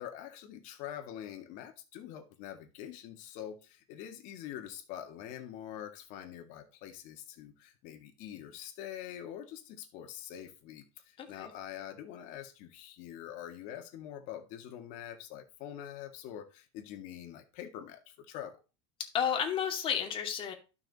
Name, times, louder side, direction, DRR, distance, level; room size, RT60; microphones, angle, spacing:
voice 1, 0.0-18.6, left 10 dB, 55° left, 1.9 m, -45 dB
voice 2, 11.2-11.5 19.0-20.5, left 8 dB, 35° left, 2.2 m, -32 dB
12.0 x 6.0 x 4.2 m
supercardioid pair, 125°, 15 cm